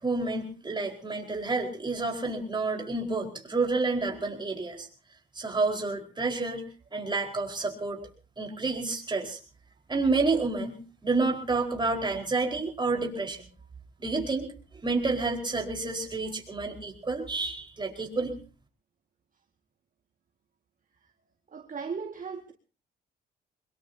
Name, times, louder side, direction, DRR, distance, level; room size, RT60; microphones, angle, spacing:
voice 1, 0.0-4.9 5.3-6.6 6.9-8.0 8.4-9.4 9.9-13.4 14.0-14.5 14.8-18.3, right 3 dB, 20° right, 4.7 m, -29 dB
voice 2, 21.5-22.5, right 5 dB, 40° right, 1.9 m, -37 dB
23.5 x 21.5 x 2.8 m
cardioid pair, 90°, 20 cm